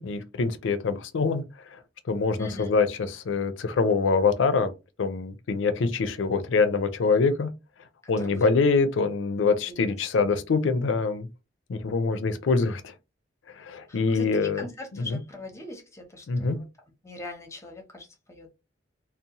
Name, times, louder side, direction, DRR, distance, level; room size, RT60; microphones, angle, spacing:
voice 1, 0.0-1.8 2.1-4.7 5.0-7.5 8.1-11.3 11.7-12.9 13.5-14.7 15.0-15.2 16.3-16.6, left 4 dB, 85° left, 0.4 m, -25 dB
voice 2, 2.4-2.7 8.0-8.5 9.7-10.3 13.9-16.7 17.0-18.5, left 2 dB, 15° left, 0.7 m, -42 dB
2.6 x 2.0 x 2.8 m
head